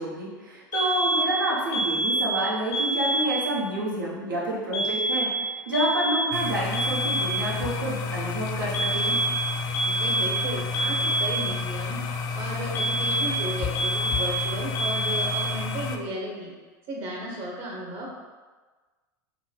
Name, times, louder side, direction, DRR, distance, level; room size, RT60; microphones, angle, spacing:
voice 1, 0.0-9.2, right 1 dB, 85° right, -6 dB, 1.1 m, -29 dB
sound 1, 0.7-1.4 1.7-2.4 2.7-3.4 4.7-5.4 5.7-6.4 6.7-7.4 8.7-9.4 9.7-10.4 10.7-11.4 12.8-13.4 13.8-14.4 14.8-15.4, right 1 dB, 70° left, 0.7 m, -26 dB
sound 2, 6.3-16.0, left 4 dB, 40° left, 0.4 m, -31 dB
voice 2, 9.8-12.0 12.3-16.5 16.9-18.1, right 1 dB, 55° right, -2 dB, 1.2 m, -34 dB
3.7 x 2.2 x 3.7 m, 1.3 s
hypercardioid pair, 90°, 10 cm